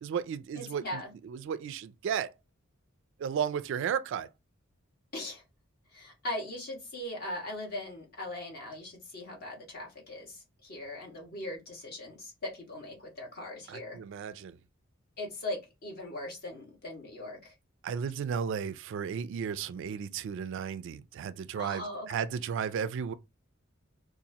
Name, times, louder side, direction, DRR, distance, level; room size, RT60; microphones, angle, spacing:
voice 1, 0.0-2.3 3.2-4.3 13.7-14.6 17.8-23.1, right 7 dB, 60° right, 0.3 m, -34 dB
voice 2, 0.5-1.1 5.1-5.4 5.9-14.0 15.2-17.5 21.6-22.2, left 1 dB, 50° left, 1.4 m, -40 dB
4.0 x 2.4 x 2.7 m
head